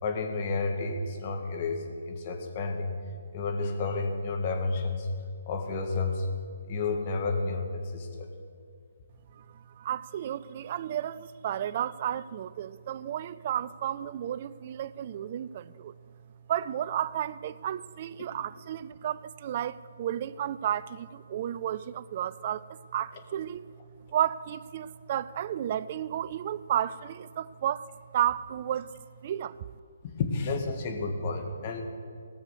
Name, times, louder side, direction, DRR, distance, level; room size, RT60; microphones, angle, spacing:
voice 1, 0.0-2.9 3.3-5.1 5.5-6.3 6.7-8.3 30.2-31.8, left 3 dB, 35° left, 1.7 m, -31 dB
voice 2, 9.3-16.0 16.5-22.6 22.9-23.7 24.1-27.9 28.1-29.0 29.2-29.7, right 10 dB, 40° right, 0.3 m, -32 dB
18.0 x 6.6 x 6.7 m
figure-of-eight pair, 140°, 0 cm